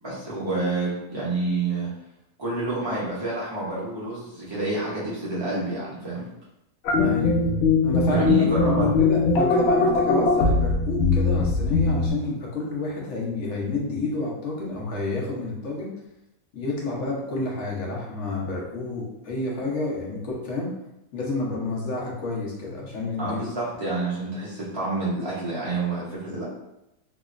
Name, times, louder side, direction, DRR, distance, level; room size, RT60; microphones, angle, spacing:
voice 1, 0.0-1.9 2.4-6.3 8.0-8.9 23.2-26.4, right 2 dB, 40° right, -8 dB, 0.4 m, -28 dB
sound 1, 6.8-12.1, left 4 dB, 90° left, 0.5 m, -21 dB
voice 2, 7.0-7.4 7.8-8.3 8.6-15.9 16.5-20.7 21.1-23.4, left 3 dB, 55° left, -3 dB, 1.0 m, -29 dB
3.3 x 2.9 x 2.4 m, 0.89 s
omnidirectional pair, 1.7 m